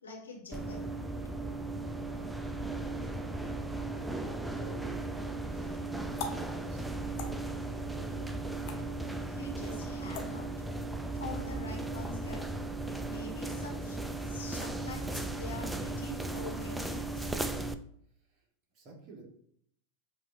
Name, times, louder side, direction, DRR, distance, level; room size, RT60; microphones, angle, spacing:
voice 1, 0.0-0.8 9.2-10.4 10.9-12.4 13.0-17.4, left 3 dB, 70° left, -1 dB, 1.3 m, -45 dB
sound 1, 0.5-17.7, right 2 dB, 5° right, 0.3 m, -36 dB
voice 2, 1.9-2.4 2.8-3.5 4.2-7.4 7.9-8.3 18.3-18.4 18.7-19.2, right 4 dB, 35° right, -1 dB, 1.3 m, -50 dB
sound 2, 5.0-10.9, left 4 dB, 45° left, 0.7 m, -47 dB
7.8 x 2.7 x 2.4 m, 0.66 s
figure-of-eight pair, 90°, 0 cm